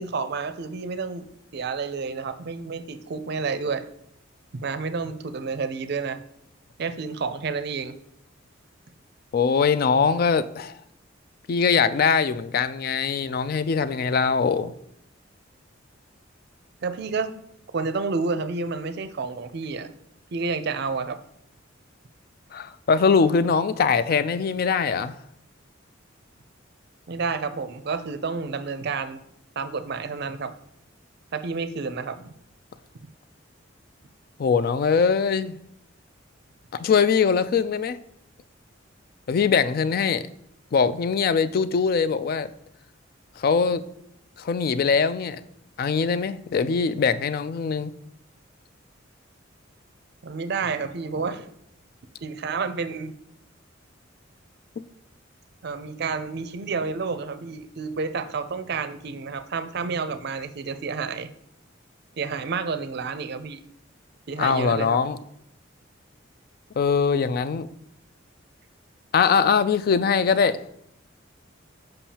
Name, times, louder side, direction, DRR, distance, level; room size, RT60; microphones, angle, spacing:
voice 1, 0.0-3.9 4.6-6.2 6.8-7.9 16.8-17.3 17.7-19.9 20.3-21.2 27.1-29.2 29.6-30.5 31.3-32.3 50.2-51.5 52.2-53.1 55.6-61.3 62.2-63.6 64.3-65.0, right 4 dB, 55° right, 0.5 m, -30 dB
voice 2, 9.3-10.8 11.5-14.7 22.5-25.2 34.4-35.6 36.7-38.0 39.3-40.2 40.7-42.5 43.4-43.8 44.4-45.4 45.8-47.9 64.4-65.2 66.8-67.7 69.1-70.6, left 5 dB, 50° left, 0.3 m, -22 dB
7.2 x 5.4 x 2.8 m
head